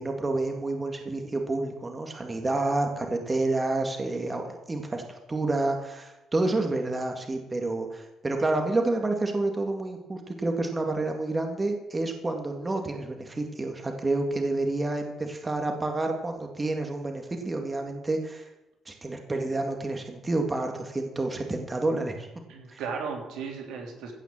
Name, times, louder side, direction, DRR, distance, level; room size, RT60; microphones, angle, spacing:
voice 1, 0.0-5.0 5.3-18.5 18.9-22.3 22.7-22.8, right 2 dB, 25° right, 3 dB, 2.2 m, -29 dB
voice 2, 22.5-24.1, right 5 dB, 90° right, 1 dB, 3.4 m, -36 dB
16.0 x 6.0 x 7.5 m, 0.98 s
cardioid pair, 90°, 0 cm